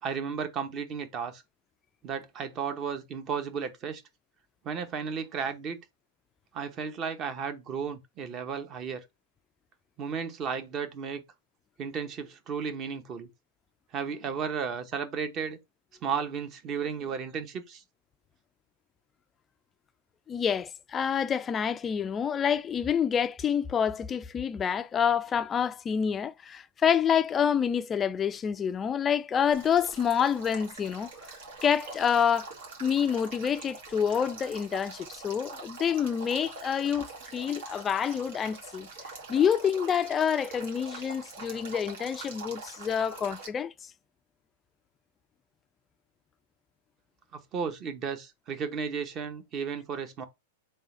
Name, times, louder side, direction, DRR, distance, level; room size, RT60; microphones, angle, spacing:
voice 1, 0.0-1.4 2.0-4.0 4.6-5.8 6.5-9.0 10.0-11.2 11.8-13.3 13.9-15.6 16.0-17.8 47.5-50.2, right 6 dB, 35° right, 0.9 m, -34 dB
voice 2, 20.3-31.1 31.6-32.5 32.8-38.9 39.3-43.7, left 8 dB, 20° left, 0.3 m, -27 dB
Male speech man speaking / Stream / Trickle dribble, 29.5-43.5, right 4 dB, 70° right, 1.7 m, -44 dB
3.7 x 2.4 x 4.1 m
hypercardioid pair, 120°, 0 cm